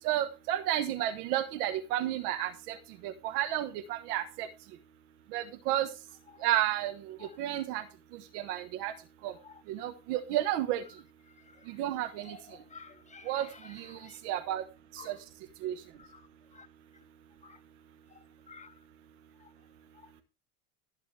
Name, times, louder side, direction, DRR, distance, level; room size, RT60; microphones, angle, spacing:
voice 1, 0.0-2.7 3.0-4.5 5.3-5.9 6.4-6.9 7.4-7.8 8.3-8.9 9.2-9.3 9.7-10.8 11.8-12.3 13.3-13.5 13.7-14.0 14.2-14.6 15.0-15.1 15.6-15.7, right 13 dB, 75° right, 1.4 m, -31 dB
voice 2, 12.2-14.2 15.0-15.2 16.0-16.3 16.5-16.7 17.4-17.6 18.5-18.7, left 4 dB, 15° left, 1.7 m, -51 dB
14.5 x 9.0 x 3.3 m
supercardioid pair, 95°, 45 cm